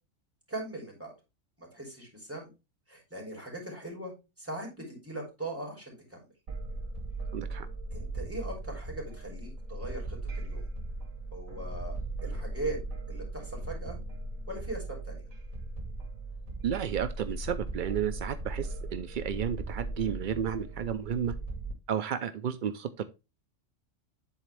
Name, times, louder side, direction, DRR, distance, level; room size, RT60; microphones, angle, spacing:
voice 1, 0.5-1.1 1.6-2.5 2.9-4.1 4.4-6.2 7.9-10.6 11.3-12.8 13.1-14.0 14.5-15.2, right 2 dB, 10° right, -2 dB, 3.1 m, -40 dB
sound 1, 6.5-21.7, right 2 dB, 90° right, 2.1 m, -38 dB
voice 2, 7.3-7.7 16.6-21.3 21.9-23.0, right 8 dB, 70° right, 11 dB, 0.4 m, -32 dB
10.0 x 4.1 x 3.3 m, 0.27 s
omnidirectional pair, 1.3 m